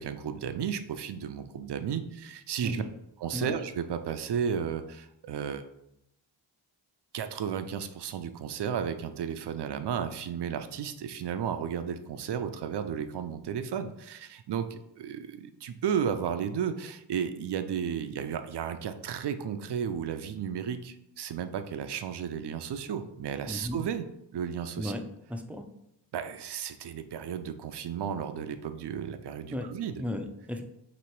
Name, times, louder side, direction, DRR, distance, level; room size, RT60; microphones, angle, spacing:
voice 1, 0.0-2.8 3.2-5.6 7.1-24.1 24.3-24.9 26.1-30.0, right 8 dB, 60° right, 9 dB, 0.5 m, -33 dB
voice 2, 23.5-23.8 24.8-25.0 25.3-25.7 29.5-30.6, left 1 dB, 5° right, 5 dB, 0.4 m, -35 dB
3.0 x 3.0 x 4.5 m, 0.79 s
cardioid pair, 60°, 48 cm